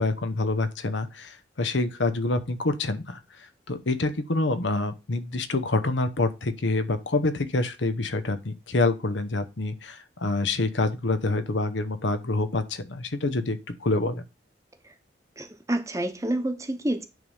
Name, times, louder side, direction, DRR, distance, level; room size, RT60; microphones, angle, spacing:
voice 1, 0.0-14.2, left 2 dB, 85° left, 1.0 m, -27 dB
voice 2, 15.4-17.0, right 1 dB, 15° right, 0.9 m, -28 dB
9.3 x 3.5 x 5.5 m
head